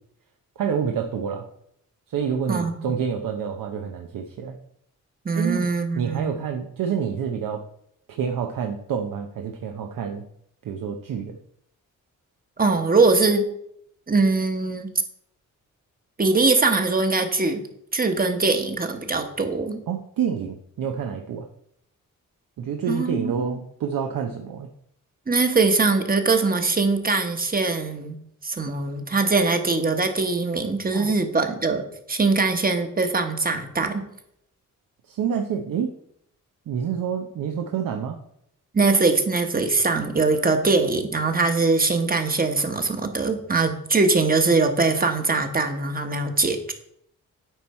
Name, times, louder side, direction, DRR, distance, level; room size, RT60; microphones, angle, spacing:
voice 1, 0.6-1.5 2.1-4.6 5.3-5.7 5.9-7.6 8.2-10.2 10.6-11.4 19.9-21.5 22.6-24.7 30.9-31.1 35.0-35.9 36.7-38.2, right 7 dB, 80° right, 3 dB, 0.8 m, -28 dB
voice 2, 2.5-2.9 5.2-6.3 12.6-13.4 14.1-14.9 16.2-17.6 17.9-19.8 22.9-23.6 25.3-28.2 28.4-34.0 38.7-46.7, right 3 dB, 25° right, 6 dB, 1.2 m, -22 dB
9.1 x 4.6 x 4.3 m, 0.72 s
cardioid pair, 90°, 33 cm